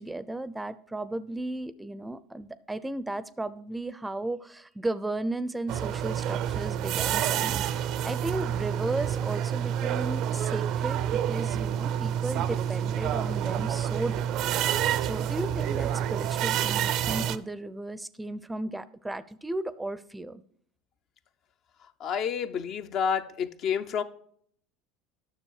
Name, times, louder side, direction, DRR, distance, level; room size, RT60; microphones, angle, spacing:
voice 1, 0.0-20.4, right 2 dB, 10° right, 16 dB, 0.5 m, -35 dB
sound 1, 5.7-17.4, right 10 dB, 55° right, 0.5 m, -28 dB
voice 2, 22.0-24.0, left 7 dB, 50° left, 9 dB, 0.7 m, -29 dB
9.7 x 6.7 x 4.8 m, 0.63 s
hypercardioid pair, 75°, 0 cm